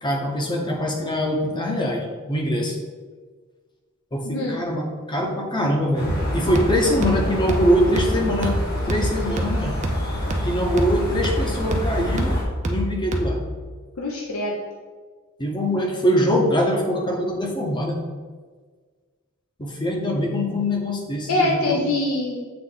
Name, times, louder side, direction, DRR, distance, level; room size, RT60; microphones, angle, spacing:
voice 1, 0.0-2.8 4.1-9.8 10.4-12.4 12.6-13.4 15.4-18.0 19.6-21.8, equal, 20° left, 1 dB, 0.8 m, -23 dB
voice 2, 4.2-4.6 14.0-14.5 21.3-22.4, left 1 dB, 80° left, -3 dB, 0.8 m, -23 dB
sound 1, 5.9-12.4, equal, 45° left, 1.4 m, -29 dB
sound 2, 6.1-13.6, equal, 35° right, 0.6 m, -27 dB
7.8 x 3.2 x 3.9 m, 1.5 s
head